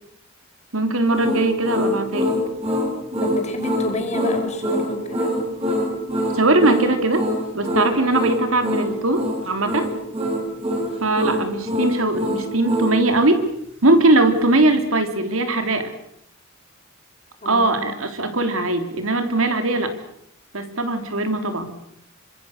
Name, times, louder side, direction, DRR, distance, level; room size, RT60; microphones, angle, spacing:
voice 1, 0.7-2.3 6.3-7.2 7.5-9.9 11.0-13.5 13.8-15.9 17.4-19.9 20.5-21.7, right 2 dB, 90° right, 8 dB, 3.5 m, -20 dB
sound 1, 1.1-13.0, equal, 30° right, 7.0 m, -24 dB
voice 2, 3.2-5.3 17.4-17.9, left 2 dB, 35° left, 4 dB, 5.2 m, -31 dB
26.0 x 25.5 x 6.7 m, 0.72 s
head